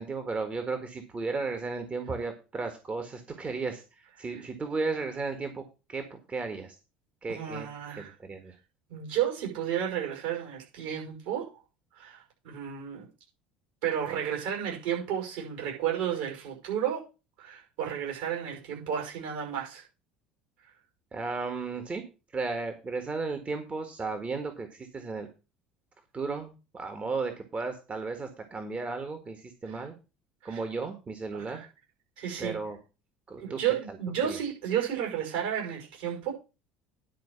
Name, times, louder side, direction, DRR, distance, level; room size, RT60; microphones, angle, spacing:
voice 1, 0.0-5.6 5.9-6.8 7.2-7.7 8.0-8.5 21.1-22.0 22.3-25.3 26.1-29.9 30.4-31.6 32.4-32.8 33.3-33.6 33.9-34.0 34.2-34.4, right 4 dB, 25° right, 6 dB, 1.7 m, -34 dB
voice 2, 7.3-8.1 8.9-11.5 11.9-13.1 13.8-17.0 17.4-19.8 29.7-29.8 30.4-30.6 31.3-31.7 32.2-32.5 33.4-36.3, right 9 dB, 65° right, 0 dB, 5.8 m, -32 dB
10.5 x 4.8 x 7.0 m, 0.31 s
figure-of-eight pair, 65°, 5 cm